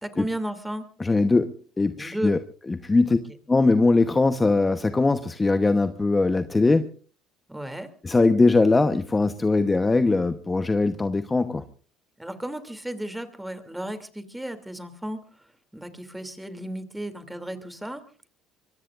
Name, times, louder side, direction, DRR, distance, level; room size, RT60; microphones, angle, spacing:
voice 1, 0.0-0.8 2.0-2.4 7.5-7.9 12.2-15.2 15.7-18.0, right 1 dB, 5° right, 8 dB, 2.8 m, -34 dB
voice 2, 1.0-2.4 2.7-3.2 3.5-6.9 8.0-11.6, left 3 dB, 20° left, 9 dB, 1.0 m, -21 dB
24.5 x 22.5 x 2.5 m, 0.39 s
supercardioid pair, 90°, 0 cm